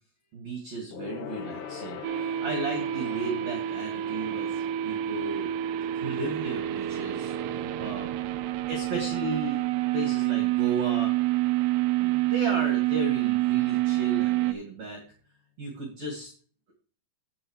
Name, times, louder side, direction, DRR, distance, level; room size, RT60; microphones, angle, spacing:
voice 1, 0.3-5.5 5.9-7.3 7.8-8.2 8.7-9.6 9.9-11.1 12.0-15.0 15.6-16.3, right 2 dB, 50° right, 1 dB, 2.4 m, -35 dB
Gong, 0.9-10.7 11.0-11.2 11.5-11.6, left 7 dB, 80° left, 1.8 m, -45 dB
sound 1, 2.0-14.5, right 15 dB, 85° right, 2.5 m, -27 dB
16.0 x 6.4 x 3.1 m, 0.41 s
omnidirectional pair, 5.5 m